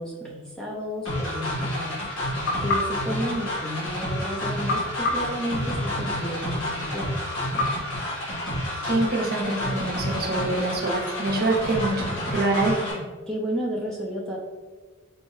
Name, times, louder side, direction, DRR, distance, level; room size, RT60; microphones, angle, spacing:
voice 1, 0.0-2.0 2.6-7.2 13.3-14.4, equal, 5° left, -4 dB, 0.5 m, -32 dB
sound 1, 1.1-12.9, left 1 dB, 85° left, 1.3 m, -30 dB
sound 2, 2.5-4.1 4.7-6.3 7.6-8.9, left 2 dB, 55° left, 0.8 m, -31 dB
voice 2, 8.8-13.0, right 2 dB, 45° right, 0 dB, 0.6 m, -25 dB
4.3 x 2.7 x 3.1 m, 1.3 s
head